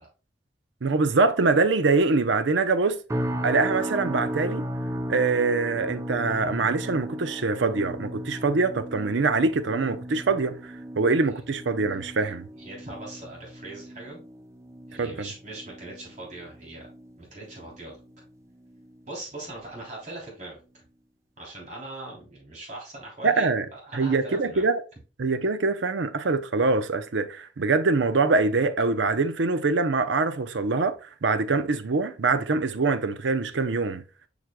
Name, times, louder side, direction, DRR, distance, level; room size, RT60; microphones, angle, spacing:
voice 1, 0.8-3.0 3.4-4.7 5.1-12.5 15.0-15.3 23.2-23.7 23.9-24.8 25.2-31.0 31.2-34.0, right 3 dB, 75° right, 0.6 m, -24 dB
sound 1, 3.1-18.3 18.6-19.0 19.5-19.7, equal, 15° right, 0.5 m, -36 dB
voice 2, 12.6-14.2 14.9-16.9 17.2-18.0 19.1-20.6 21.4-24.6, right 2 dB, 40° right, 3.2 m, -40 dB
7.2 x 6.1 x 2.2 m
head